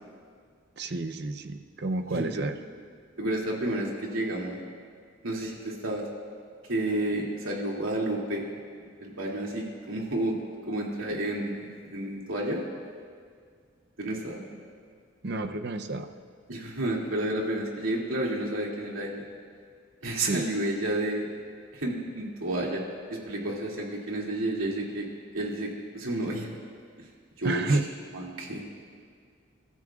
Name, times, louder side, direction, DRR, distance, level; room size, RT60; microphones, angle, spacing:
voice 1, 0.8-2.5 15.2-16.1 20.2-20.4 27.4-27.8, right 2 dB, 50° right, 7 dB, 0.7 m, -30 dB
voice 2, 2.1-2.4 3.2-4.6 5.2-6.1 6.6-8.5 8.8-10.4 10.7-12.6 14.0-14.4 16.5-19.2 20.0-21.3 21.7-22.8 23.1-25.1 25.3-26.5 27.0-27.1 27.4-27.8 28.1-28.7, right 1 dB, 85° right, -3 dB, 2.7 m, -31 dB
30.0 x 13.5 x 2.5 m, 2.1 s
head